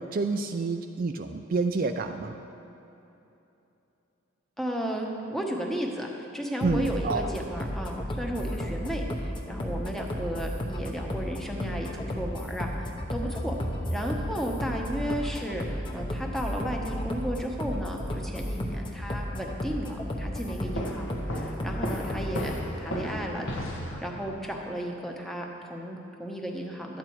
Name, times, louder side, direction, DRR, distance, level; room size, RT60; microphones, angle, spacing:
voice 1, 0.0-2.4 6.6-7.2, right 4 dB, 45° right, 6 dB, 0.3 m, -28 dB
voice 2, 4.6-13.6 13.9-22.5 22.8-27.0, equal, ahead, 0 dB, 0.9 m, -34 dB
sound 1, 6.6-22.6, equal, 25° left, 0.8 m, -33 dB
sound 2, 20.8-24.4, equal, 65° left, 1.2 m, -34 dB
12.0 x 8.8 x 4.6 m, 2.9 s
head